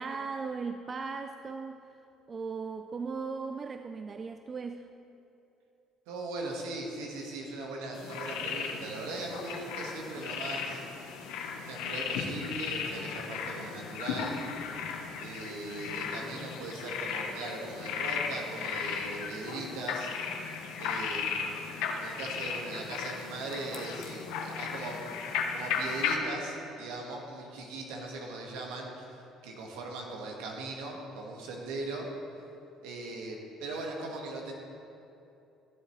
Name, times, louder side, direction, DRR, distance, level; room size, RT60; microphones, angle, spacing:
voice 1, 0.0-1.8 2.3-4.9, right 4 dB, 40° right, 8 dB, 0.4 m, -37 dB
voice 2, 6.1-10.8 11.6-14.4 15.2-20.1 20.8-21.4 22.0-25.0 25.5-32.1 32.8-34.5, right 2 dB, 80° right, 0 dB, 1.6 m, -39 dB
sound 1, 7.9-26.2, left 6 dB, 75° left, 0.9 m, -36 dB
14.0 x 7.5 x 3.1 m, 2.8 s
hypercardioid pair, 65°, 0 cm